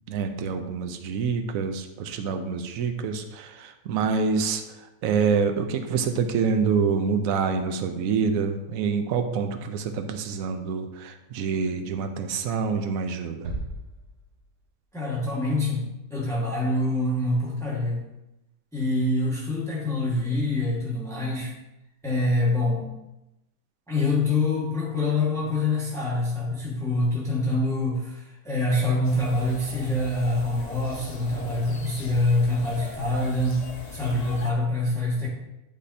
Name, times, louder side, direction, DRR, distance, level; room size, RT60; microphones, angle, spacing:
voice 1, 0.1-4.6 5.0-13.5, right 5 dB, 70° right, 7 dB, 1.1 m, -26 dB
sound 1, 13.4-14.8, right 2 dB, 85° right, 1.7 m, -36 dB
voice 2, 14.9-18.1 18.7-21.5 22.0-22.9 23.9-33.7 33.9-35.3, left 2 dB, ahead, -5 dB, 1.5 m, -25 dB
sound 2, 29.0-34.5, left 3 dB, 40° left, 0.6 m, -39 dB
11.5 x 4.3 x 2.7 m, 0.94 s
omnidirectional pair, 1.6 m